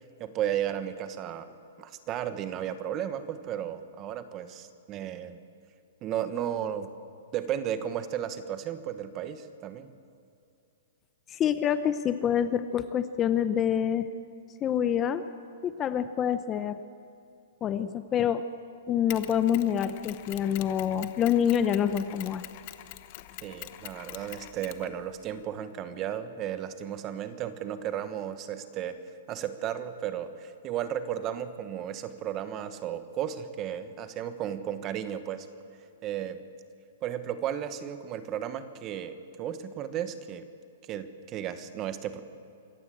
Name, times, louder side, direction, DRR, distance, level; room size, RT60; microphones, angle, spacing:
voice 1, 0.2-1.5 1.8-5.4 6.0-6.9 7.3-9.9 23.4-29.0 29.3-35.5 36.0-36.4 37.0-40.5 40.9-42.2, right 10 dB, 25° right, 11 dB, 1.2 m, -34 dB
voice 2, 11.3-14.1 14.6-15.2 15.6-16.8 17.6-18.4 18.9-22.4, left 9 dB, 20° left, 11 dB, 0.7 m, -26 dB
Mechanisms, 19.1-25.4, left 15 dB, 40° left, 1.0 m, -45 dB
26.0 x 14.5 x 8.6 m, 2.6 s
hypercardioid pair, 160°, 0 cm